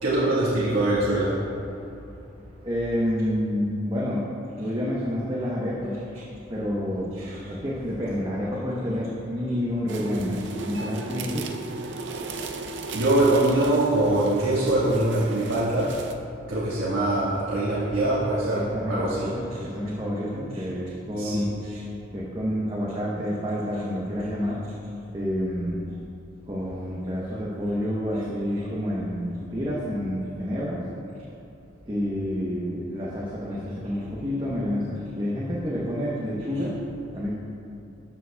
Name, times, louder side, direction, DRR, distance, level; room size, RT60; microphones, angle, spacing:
voice 1, 0.0-1.4 7.2-7.4 12.9-15.9 16.5-19.3 21.2-21.5, right 1 dB, 85° right, -9 dB, 1.5 m, -23 dB
voice 2, 2.6-4.3 4.6-6.0 6.5-7.1 7.5-10.4 10.7-11.4 18.5-21.5 22.1-24.6 25.1-25.8 26.5-30.8 31.9-36.7 37.1-37.3, equal, 25° right, -6 dB, 0.8 m, -28 dB
sound 1, 9.9-16.1, right 3 dB, 65° right, 0.5 m, -36 dB
13.5 x 6.8 x 2.2 m, 2.8 s
head